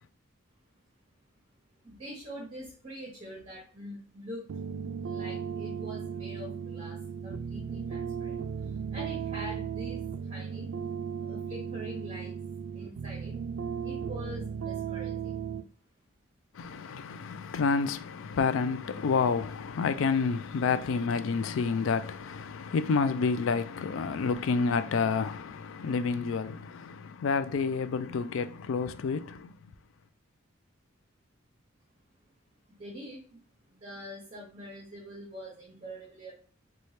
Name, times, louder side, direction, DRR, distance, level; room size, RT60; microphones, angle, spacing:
voice 1, 1.8-4.5 5.0-10.7 11.2-12.4 12.7-13.4 13.8-15.4 32.7-33.4 33.7-36.3, equal, 30° right, 0.8 m, -44 dB
sound 1, 4.5-15.6, right 7 dB, 70° right, 0.3 m, -36 dB
voice 2, 16.5-29.5, left 5 dB, 70° left, 0.3 m, -29 dB
4.2 x 2.2 x 3.2 m
head